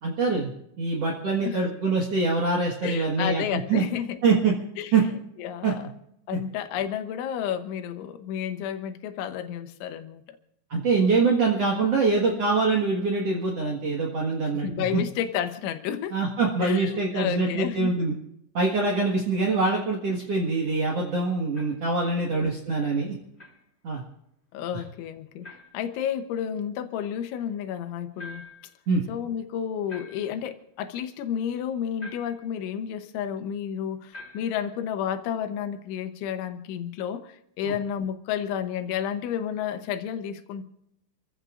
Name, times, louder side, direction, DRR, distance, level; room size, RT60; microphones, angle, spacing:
voice 1, 0.0-0.5 0.8-3.4 3.7-3.8 4.2-4.5 4.9-5.0 5.6-5.7 6.3-6.4 10.7-15.0 16.1-18.1 18.5-23.2 23.8-24.0 28.9-29.0 37.6-37.7, right 4 dB, 90° right, -2 dB, 1.3 m, -24 dB
voice 2, 2.8-4.2 4.8-4.9 5.4-5.9 6.3-10.4 14.5-16.2 16.6-17.9 22.3-22.6 24.5-28.5 29.1-40.6, left 9 dB, 80° left, 9 dB, 3.3 m, -31 dB
sound 1, 21.5-21.9 23.4-23.6 25.4-25.8 28.2-28.7 29.9-30.5 32.0-32.5 34.1-34.6, left 2 dB, 20° left, 1.9 m, -45 dB
28.0 x 15.5 x 2.5 m, 0.78 s
omnidirectional pair, 5.6 m